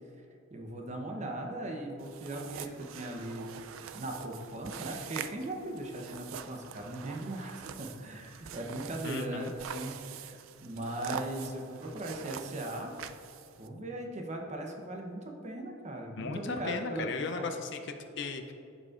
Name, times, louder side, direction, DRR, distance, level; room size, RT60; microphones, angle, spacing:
voice 1, 0.5-9.5 9.7-12.9 13.6-17.5, right 1 dB, 35° right, 2 dB, 0.7 m, -39 dB
sound 1, 2.0-13.7, right 7 dB, 70° right, 0.3 m, -44 dB
voice 2, 9.0-9.5 16.2-18.5, left 4 dB, 60° left, 6 dB, 0.5 m, -36 dB
11.0 x 5.1 x 2.4 m, 2.6 s
head